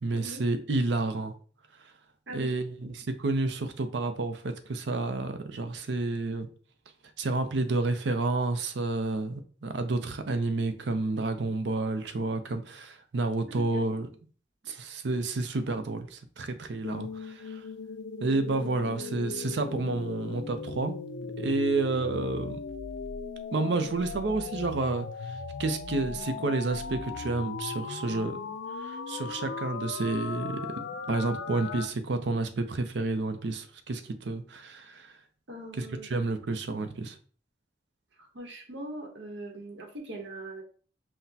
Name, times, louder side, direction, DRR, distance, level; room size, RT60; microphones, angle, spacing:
voice 1, 0.0-1.3 2.3-6.5 7.2-14.1 14.7-17.6 18.2-20.9 21.4-22.6 23.5-28.4 28.8-35.1 35.8-37.2, right 3 dB, 70° right, 0.5 m, -30 dB
sound 1, 16.8-31.9, left 5 dB, 75° left, 0.4 m, -38 dB
voice 2, 22.0-22.3 35.5-36.1 38.3-40.6, right 1 dB, 85° right, 1.0 m, -41 dB
5.8 x 2.1 x 2.7 m
head